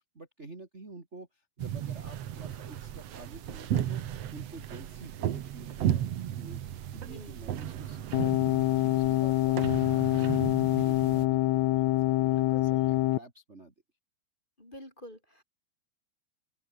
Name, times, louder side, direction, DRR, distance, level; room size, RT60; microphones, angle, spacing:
voice 1, 0.0-12.3 12.7-13.7, right 2 dB, 20° right, 3.1 m, -49 dB
sound 1, 1.6-11.3, right 11 dB, 60° right, 2.2 m, -35 dB
sound 2, 8.1-13.2, left 17 dB, 75° left, 1.8 m, -25 dB
voice 2, 12.3-12.9 14.6-15.4, left 1 dB, 15° left, 4.4 m, -48 dB
open air
omnidirectional pair, 3.5 m